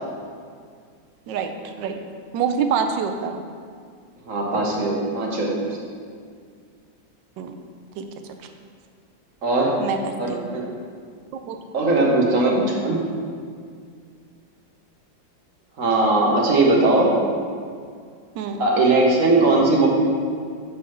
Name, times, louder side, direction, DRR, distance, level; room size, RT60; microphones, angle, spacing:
voice 1, 1.3-2.0 2.3-3.4 7.4-7.5 8.0-8.1 9.8-10.5 11.3-11.6 18.4-18.6, right 6 dB, 85° right, 6 dB, 1.3 m, -26 dB
voice 2, 4.3-5.7 9.4-9.8 10.2-10.7 11.7-13.0 15.8-17.1 18.6-19.9, right 2 dB, 50° right, -2 dB, 1.5 m, -19 dB
7.0 x 4.9 x 5.9 m, 2.1 s
omnidirectional pair, 2.0 m